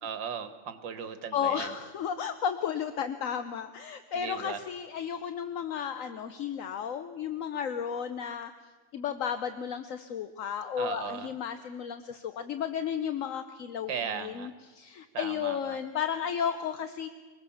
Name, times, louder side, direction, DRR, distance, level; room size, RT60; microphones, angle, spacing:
voice 1, 0.0-1.7 4.1-4.6 10.8-11.3 13.9-14.5 15.1-15.8, right 7 dB, 80° right, 10 dB, 2.1 m, -37 dB
voice 2, 1.3-8.5 8.9-17.1, left 8 dB, 55° left, 10 dB, 1.0 m, -33 dB
24.5 x 20.0 x 7.2 m, 1.4 s
omnidirectional pair, 2.0 m